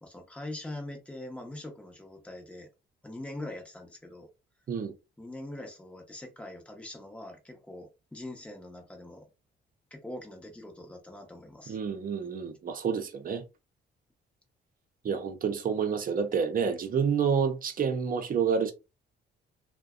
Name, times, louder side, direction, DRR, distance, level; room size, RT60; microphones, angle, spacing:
voice 1, 0.0-2.7 3.0-4.3 5.2-9.3 9.9-11.8, left 1 dB, 5° left, 0.8 m, -43 dB
voice 2, 11.7-13.4 15.0-18.7, right 6 dB, 45° right, 0.6 m, -28 dB
2.6 x 2.1 x 2.4 m
cardioid pair, 90°, 20 cm